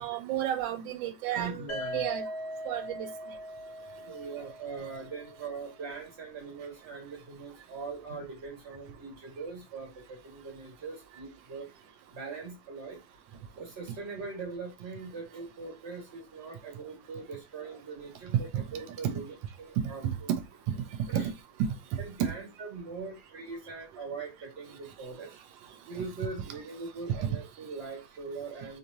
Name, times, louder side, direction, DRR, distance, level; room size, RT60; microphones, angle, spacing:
voice 1, 0.0-1.6 1.9-2.2 2.6-3.1 18.5-18.6 20.0-20.4 20.8-20.9 21.1-21.2 27.1-27.2, right 11 dB, 85° right, 1.3 m, -31 dB
voice 2, 1.3-2.0 4.0-11.7 12.1-13.0 13.6-20.3 21.1-21.3 22.0-25.4 25.8-28.8, right 4 dB, 40° right, 1.5 m, -41 dB
sound 1, 1.7-5.6, equal, 30° left, 1.0 m, -40 dB
3.0 x 3.0 x 2.6 m
omnidirectional pair, 2.0 m